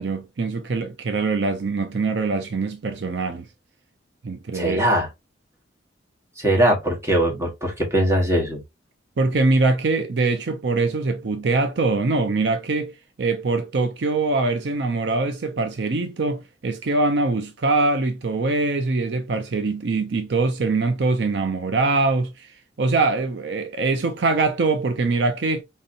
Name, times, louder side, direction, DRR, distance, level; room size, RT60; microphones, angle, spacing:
voice 1, 0.0-3.5 4.2-4.8 9.2-22.5 22.8-25.6, right 3 dB, 70° right, 0.5 m, -23 dB
voice 2, 4.5-5.1 6.4-8.6, right 1 dB, 15° right, 1.3 m, -21 dB
4.1 x 2.7 x 2.5 m
head